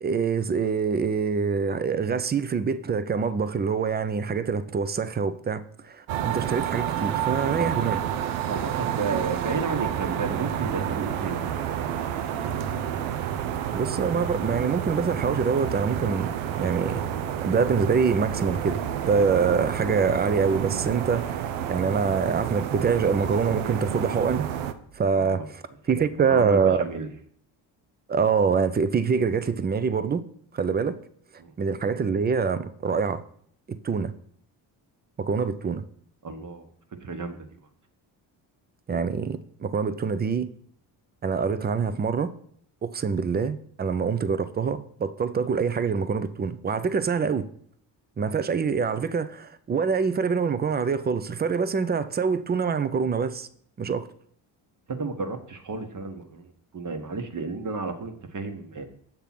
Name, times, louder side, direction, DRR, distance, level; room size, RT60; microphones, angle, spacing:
voice 1, 0.0-8.0 13.7-16.3 16.6-17.0 17.4-24.5 25.0-25.6 25.9-26.8 28.1-30.2 30.5-31.0 31.6-33.2 33.7-34.1 35.2-35.8 38.9-40.5 41.2-42.3 42.8-47.5 48.2-53.5 53.8-54.1, right 5 dB, 20° right, 0.5 m, -25 dB
sound 1, 6.1-24.7, right 10 dB, 80° right, 0.6 m, -29 dB
voice 2, 8.5-12.1 25.1-25.5 25.9-27.1 31.4-31.5 36.2-36.7 37.0-37.5 54.9-58.9, right 4 dB, 40° right, 1.2 m, -33 dB
7.2 x 3.4 x 5.9 m
supercardioid pair, 55°, 49 cm